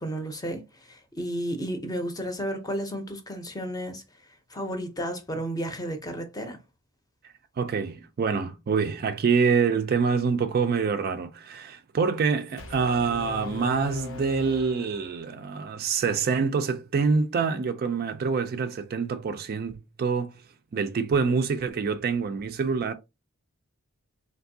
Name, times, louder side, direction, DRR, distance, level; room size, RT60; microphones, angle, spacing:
voice 1, 0.0-4.0 4.5-6.6, equal, 15° left, 0.6 m, -32 dB
voice 2, 7.6-20.4 20.7-22.9, right 5 dB, 45° right, 0.3 m, -26 dB
Brass instrument, 12.6-15.7, left 5 dB, 65° left, 0.7 m, -40 dB
3.5 x 2.6 x 2.6 m
head